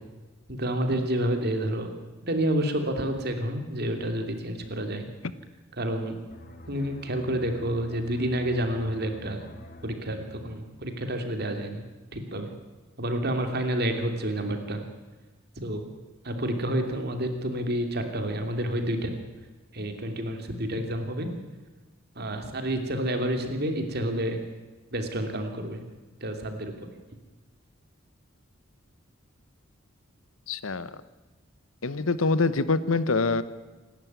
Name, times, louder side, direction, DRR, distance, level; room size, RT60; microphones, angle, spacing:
voice 1, 0.5-1.9 2.3-5.1 5.8-6.1 6.7-9.4 9.8-11.8 12.1-12.5 13.0-14.8 15.6-15.8 16.2-19.1 19.7-21.3 22.1-24.4 24.9-25.8 26.2-26.7, right 1 dB, 50° right, 5 dB, 2.9 m, -29 dB
sound 1, 6.3-11.7 12.0-12.3, left 1 dB, 45° left, 2.1 m, -48 dB
voice 2, 30.5-31.0 31.8-33.4, left 3 dB, 90° left, 15 dB, 1.0 m, -25 dB
27.0 x 12.0 x 9.5 m, 1.2 s
head